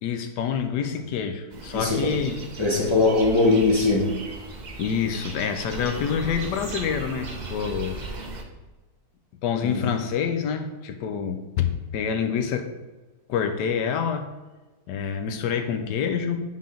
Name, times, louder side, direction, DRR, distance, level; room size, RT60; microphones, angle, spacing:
voice 1, 0.0-2.4 4.8-8.0 9.4-12.7 13.3-14.3 14.9-16.4, left 7 dB, 85° left, 7 dB, 1.3 m, -27 dB
sound 1, 1.5-8.4, right 2 dB, 50° right, 0.5 m, -37 dB
voice 2, 1.7-2.1 2.6-4.2 9.6-9.8, left 3 dB, 20° left, -4 dB, 1.0 m, -21 dB
9.4 x 3.6 x 3.8 m, 1.2 s
omnidirectional pair, 1.8 m